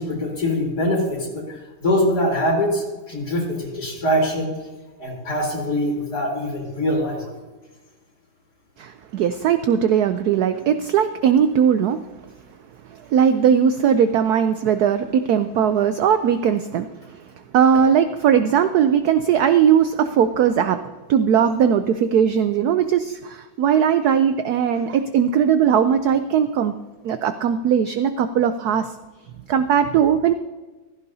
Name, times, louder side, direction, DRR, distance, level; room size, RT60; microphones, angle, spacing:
voice 1, 0.0-4.5 5.0-7.3, equal, 50° left, -3 dB, 4.5 m, -23 dB
voice 2, 8.8-12.0 12.9-17.2 17.5-26.7 27.0-28.9 29.5-30.3, right 8 dB, 75° right, 10 dB, 0.8 m, -19 dB
15.5 x 14.5 x 2.8 m, 1.2 s
omnidirectional pair, 2.2 m